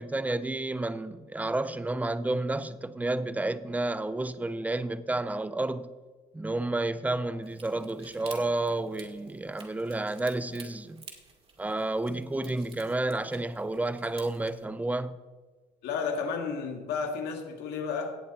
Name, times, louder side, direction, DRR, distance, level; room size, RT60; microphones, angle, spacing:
voice 1, 0.0-5.9 6.3-11.1 11.6-15.2, right 2 dB, 10° right, 0.6 m, -31 dB
sound 1, 7.4-14.6, right 4 dB, 35° right, 2.3 m, -52 dB
voice 2, 15.8-18.2, left 5 dB, 80° left, 1.9 m, -32 dB
17.5 x 7.1 x 4.3 m
cardioid pair, 110°, 17 cm